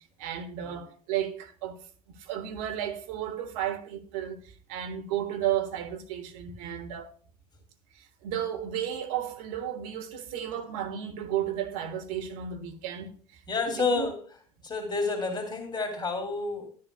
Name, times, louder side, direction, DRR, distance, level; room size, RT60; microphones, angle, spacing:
voice 1, 0.2-1.8 2.3-4.4 4.7-7.1 8.2-13.1 13.7-14.1, right 10 dB, 60° right, 1.4 m, -33 dB
voice 2, 13.5-14.2 14.6-16.7, left 3 dB, 20° left, 2.6 m, -29 dB
11.5 x 10.5 x 2.2 m
hypercardioid pair, 75°, 20 cm